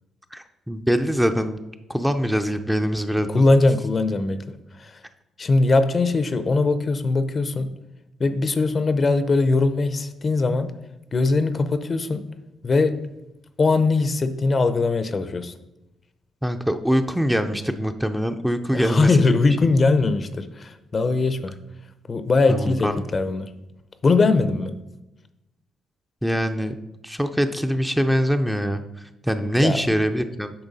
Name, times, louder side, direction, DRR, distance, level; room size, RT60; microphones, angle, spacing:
voice 1, 0.3-1.6 1.9-3.4 16.4-19.6 22.5-23.1 26.2-26.7 27.0-30.5, equal, 5° right, 7 dB, 0.5 m, -23 dB
voice 2, 3.3-4.9 5.4-7.7 8.2-10.7 11.1-12.3 12.6-13.1 13.6-15.5 18.7-21.6 22.1-23.5 24.0-24.8 29.6-29.8, left 3 dB, 35° left, 11 dB, 0.6 m, -21 dB
8.9 x 5.7 x 4.1 m, 0.95 s
cardioid pair, 90°, 0 cm